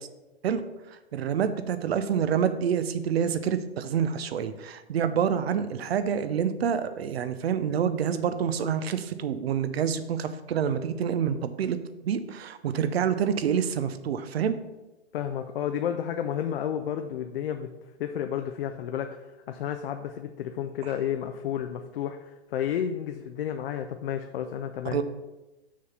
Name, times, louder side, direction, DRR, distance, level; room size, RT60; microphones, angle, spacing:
voice 1, 1.1-11.8 12.0-14.6 24.9-25.0, right 8 dB, 65° right, 11 dB, 0.7 m, -27 dB
voice 2, 15.1-17.7 18.0-25.0, left 9 dB, 55° left, 6 dB, 0.6 m, -31 dB
6.2 x 4.0 x 5.8 m, 1.0 s
hypercardioid pair, 130°, 33 cm